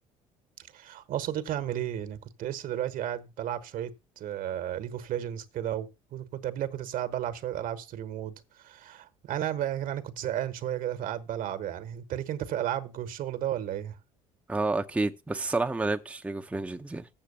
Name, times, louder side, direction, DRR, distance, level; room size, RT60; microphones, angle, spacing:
voice 1, 0.7-13.9, right 11 dB, 55° right, 1.2 m, -33 dB
voice 2, 14.5-17.1, right 2 dB, 5° right, 0.7 m, -30 dB
7.5 x 6.5 x 6.8 m
hypercardioid pair, 60°, 17 cm